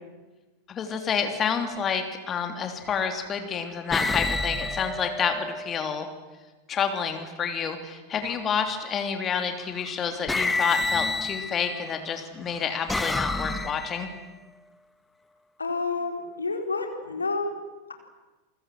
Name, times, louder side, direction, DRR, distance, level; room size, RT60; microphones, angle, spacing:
voice 1, 0.7-6.1 6.7-14.1, left 6 dB, 25° left, 6 dB, 3.1 m, -29 dB
sound 1, 1.6-1.9 2.8-3.3 3.9-6.0 8.2-8.7 9.8-9.9 10.3-11.9 12.5-14.2, left 2 dB, 10° left, 1.6 m, -29 dB
voice 2, 15.6-17.6, left 3 dB, 75° left, 4 dB, 4.1 m, -29 dB
28.5 x 23.5 x 7.8 m, 1.2 s
figure-of-eight pair, 90°, 0 cm